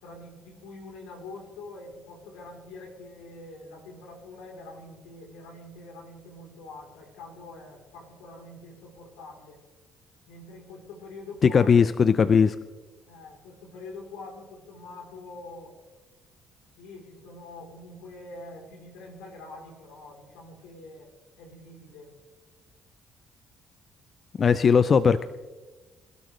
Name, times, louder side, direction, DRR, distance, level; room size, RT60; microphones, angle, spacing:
voice 1, 0.0-9.6 10.3-11.7 13.1-15.8 16.8-22.1, left 2 dB, 85° left, 1 dB, 3.7 m, -45 dB
voice 2, 11.4-12.6 24.4-25.2, left 6 dB, 45° left, 14 dB, 0.5 m, -19 dB
26.0 x 12.5 x 3.3 m, 1.2 s
supercardioid pair, 70°, 0 cm